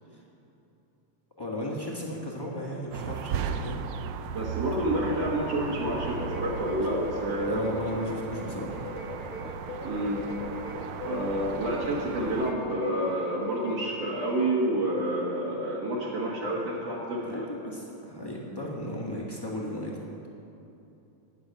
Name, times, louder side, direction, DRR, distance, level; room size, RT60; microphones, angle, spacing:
voice 1, 1.4-3.8 7.5-8.8 17.2-20.0, left 1 dB, 15° left, -4 dB, 0.8 m, -35 dB
sound 1, 2.9-12.5, right 7 dB, 90° right, 1.4 m, -36 dB
voice 2, 4.3-7.7 9.8-10.2 11.0-17.5, right 1 dB, 60° right, -6 dB, 2.5 m, -29 dB
sound 2, 6.0-14.6, left 3 dB, 40° left, 1.1 m, -40 dB
11.5 x 6.8 x 9.2 m, 2.8 s
omnidirectional pair, 3.4 m